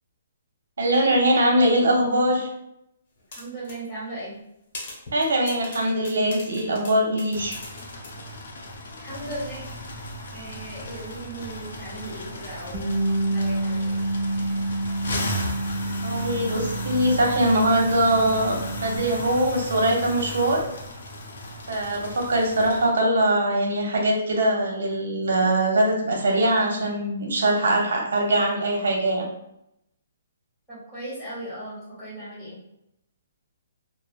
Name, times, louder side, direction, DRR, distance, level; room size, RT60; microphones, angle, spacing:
voice 1, 0.8-2.5 5.1-7.6 15.9-20.6 21.7-29.3, right 1 dB, 75° right, 0 dB, 0.8 m, -22 dB
sound 1, 3.3-3.8 4.2-4.3 4.7-8.2, left 2 dB, 45° left, 0.9 m, -40 dB
voice 2, 3.3-4.3 9.0-9.6 10.3-13.0 13.3-14.0 30.7-32.6, right 1 dB, ahead, -12 dB, 1.3 m, -37 dB
sound 2, 7.3-23.0, left 1 dB, 65° left, 0.6 m, -35 dB
Bass guitar, 12.7-19.0, right 2 dB, 30° right, 0.7 m, -28 dB
3.2 x 2.0 x 2.4 m, 0.80 s
hypercardioid pair, 170°, 0 cm